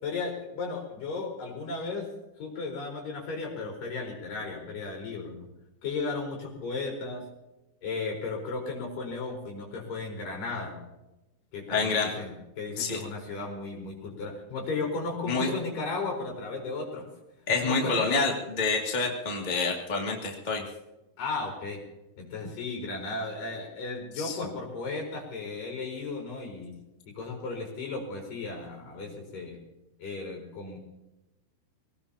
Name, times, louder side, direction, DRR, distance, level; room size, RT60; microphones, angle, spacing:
voice 1, 0.0-2.1 2.4-5.5 5.8-7.2 7.8-10.8 11.5-17.1 17.6-18.2 21.2-21.8 22.2-26.8 27.1-29.6 30.0-30.8, left 3 dB, 45° left, 1 dB, 5.8 m, -35 dB
voice 2, 11.7-12.1 12.8-13.0 15.3-15.5 17.5-20.6 24.2-24.4, left 4 dB, 30° left, -1 dB, 0.8 m, -27 dB
24.5 x 18.5 x 2.9 m, 0.97 s
omnidirectional pair, 5.5 m